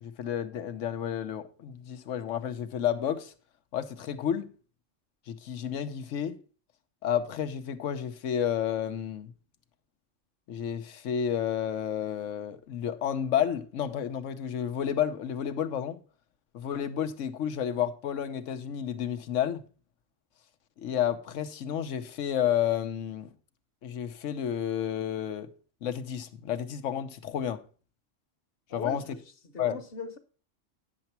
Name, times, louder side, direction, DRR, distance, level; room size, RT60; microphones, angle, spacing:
voice 1, 0.0-3.3 3.7-4.5 5.3-6.4 7.0-9.3 10.5-16.0 16.5-19.6 20.8-23.3 23.8-25.5 25.8-27.6 28.7-29.0 29.6-29.8, left 9 dB, 80° left, 1.1 m, -31 dB
voice 2, 28.7-30.2, left 4 dB, 50° left, 1.2 m, -40 dB
9.6 x 6.9 x 4.3 m
omnidirectional pair, 1.3 m